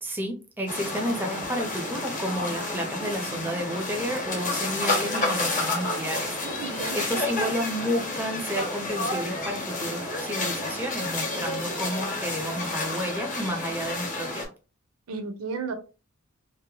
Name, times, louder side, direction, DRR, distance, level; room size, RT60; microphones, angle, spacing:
voice 1, 0.0-14.5, equal, 10° right, 3 dB, 0.4 m, -31 dB
sound 1, 0.7-14.5, left 2 dB, 35° left, 0.8 m, -30 dB
voice 2, 6.4-7.0 15.1-15.7, right 4 dB, 80° right, 7 dB, 0.5 m, -33 dB
2.7 x 2.1 x 2.7 m, 0.33 s
head